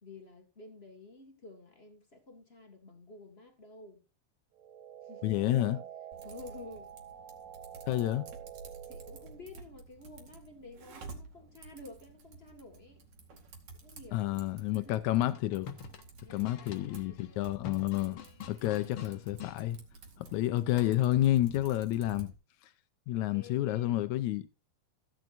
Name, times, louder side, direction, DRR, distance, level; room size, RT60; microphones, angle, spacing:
voice 1, 0.0-4.0 5.0-5.9 6.2-6.9 8.9-13.0 13.8-14.3 14.7-15.0 16.2-17.4 23.1-24.1, left 3 dB, 40° left, 0.8 m, -51 dB
sound 1, 4.5-9.5, right 10 dB, 75° right, 1.5 m, -48 dB
voice 2, 5.2-5.8 7.9-8.2 14.1-15.7 16.3-18.2 18.5-19.8 20.2-22.3 23.1-24.4, left 14 dB, 85° left, 1.6 m, -29 dB
Typing, 6.1-22.3, right 3 dB, 55° right, 3.3 m, -52 dB
sound 2, 15.3-19.6 20.8-21.2, left 8 dB, 60° left, 1.6 m, -46 dB
15.5 x 9.1 x 2.6 m
omnidirectional pair, 4.2 m